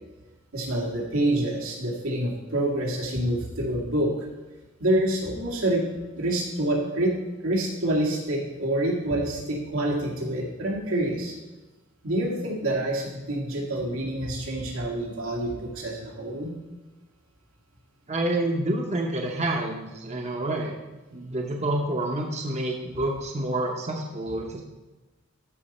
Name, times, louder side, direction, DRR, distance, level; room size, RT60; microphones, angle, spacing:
voice 1, 0.5-4.1 4.8-5.8 6.1-7.2 7.4-11.4 12.0-16.5, right 1 dB, 85° right, -2 dB, 2.2 m, -27 dB
voice 2, 18.1-20.8 21.1-24.6, right 1 dB, 30° right, 1 dB, 0.9 m, -28 dB
13.0 x 5.5 x 4.3 m, 1.1 s
head